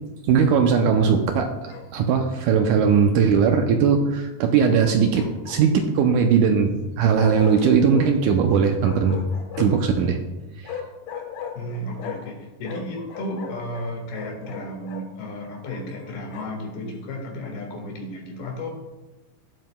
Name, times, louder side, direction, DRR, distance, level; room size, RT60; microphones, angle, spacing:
voice 1, 0.3-9.2 9.6-10.2 10.6-10.8, right 6 dB, 80° right, 4 dB, 1.8 m, -19 dB
Bark, 1.7-2.3 4.8-5.9 7.2-8.1 8.8-9.9 10.6-12.4 12.6-15.1 15.7-16.7, left 7 dB, 70° left, 2.6 m, -37 dB
voice 2, 11.6-18.7, left 1 dB, 85° left, 2 dB, 3.6 m, -33 dB
17.5 x 7.7 x 2.2 m, 1.1 s
omnidirectional pair, 4.2 m